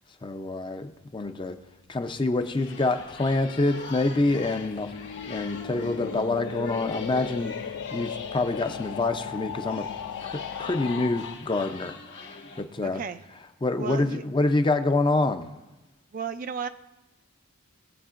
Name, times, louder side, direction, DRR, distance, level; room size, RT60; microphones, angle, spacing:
voice 1, 0.2-1.6 1.9-4.9 5.2-9.9 10.2-12.0 12.3-13.0 13.6-15.5, left 2 dB, 20° left, 8 dB, 0.5 m, -27 dB
sound 1, 2.1-11.3, left 7 dB, 80° left, 0.4 m, -37 dB
sound 2, 2.4-12.6, left 4 dB, 55° left, 1.6 m, -43 dB
voice 2, 12.8-13.2 13.8-14.2 16.1-16.7, right 6 dB, 40° right, 10 dB, 0.3 m, -33 dB
19.5 x 7.7 x 2.5 m, 1.0 s
head